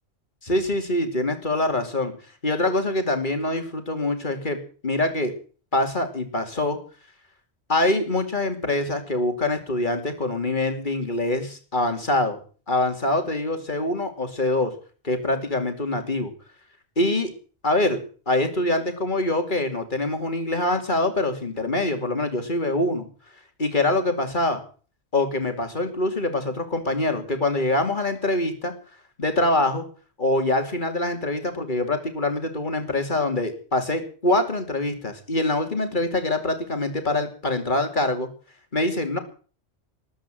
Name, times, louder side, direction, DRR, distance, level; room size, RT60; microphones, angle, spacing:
voice 1, 0.4-2.1 2.4-4.6 4.8-5.3 5.7-6.8 7.7-12.4 12.7-14.7 15.0-16.3 17.0-17.3 17.6-18.0 18.3-23.1 23.6-24.6 25.1-28.7 29.2-29.8 30.2-38.3 38.7-39.2, left 2 dB, 45° left, 6 dB, 2.9 m, -24 dB
13.5 x 11.5 x 7.7 m, 0.41 s
omnidirectional pair, 1.2 m